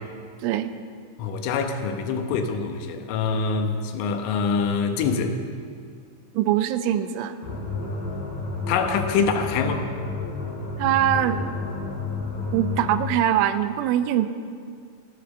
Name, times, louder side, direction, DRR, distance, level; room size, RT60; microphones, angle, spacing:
voice 1, 0.4-0.7 6.3-7.4 10.8-11.4 12.5-14.3, right 11 dB, 80° right, 10 dB, 3.0 m, -22 dB
voice 2, 1.2-5.4 8.7-9.9, left 5 dB, 85° left, 6 dB, 3.6 m, -25 dB
sound 1, 7.4-13.1, left 4 dB, 25° left, 4.2 m, -31 dB
14.5 x 12.0 x 6.7 m, 2.1 s
omnidirectional pair, 5.6 m